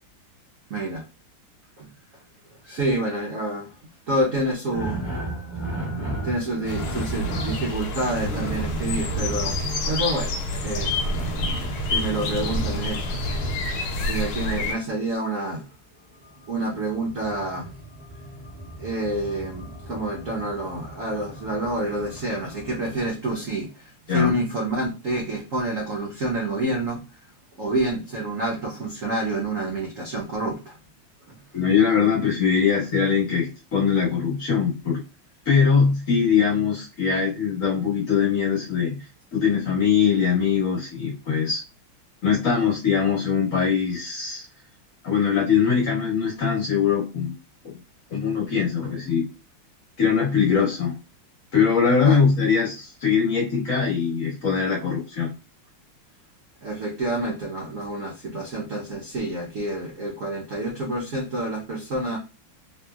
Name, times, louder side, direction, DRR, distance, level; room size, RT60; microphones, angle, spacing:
voice 1, 0.7-1.0 1.8-1.9 2.6-3.7 4.1-5.0 6.2-9.6 9.9-11.0 11.9-13.2 14.1-15.6 16.5-17.7 18.8-27.0 27.5-30.8 52.0-52.2 56.6-62.2, right 1 dB, 75° right, -1 dB, 0.7 m, -28 dB
sound 1, 4.7-14.7 16.2-23.1, right 2 dB, 45° right, 0.3 m, -34 dB
sound 2, 6.7-14.8, left 2 dB, 80° left, 1.5 m, -28 dB
voice 2, 31.5-35.0 35.5-39.0 39.3-41.6 42.2-44.5 45.0-47.3 48.1-49.2 50.0-50.9 51.5-55.3, left 6 dB, 50° left, -2 dB, 1.1 m, -22 dB
3.1 x 2.8 x 2.3 m, 0.30 s
omnidirectional pair, 2.2 m